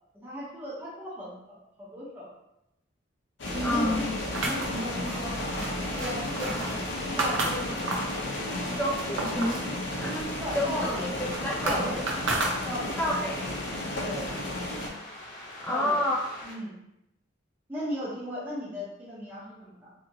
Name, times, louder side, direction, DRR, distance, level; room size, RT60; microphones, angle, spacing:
voice 1, 0.2-2.3 3.5-7.9 9.3-9.5 10.4-11.2 11.6-12.1 12.6-13.6 14.0-14.3 15.7-16.1 16.4-16.7 17.7-19.9, equal, 10° right, -9 dB, 0.8 m, -36 dB
sound 1, 3.4-14.9, left 1 dB, 60° left, 0.6 m, -33 dB
voice 2, 3.6-4.0 6.4-6.5 8.8-10.9 11.4-11.9 13.0-13.4 15.6-16.3, left 1 dB, 10° left, -2 dB, 0.4 m, -29 dB
sound 2, 3.7-16.5, left 1 dB, 40° left, 1.0 m, -45 dB
sound 3, 4.3-8.2 8.6-9.7 10.0-13.1, right 2 dB, 75° right, 0.6 m, -33 dB
2.8 x 2.7 x 2.7 m, 0.86 s
head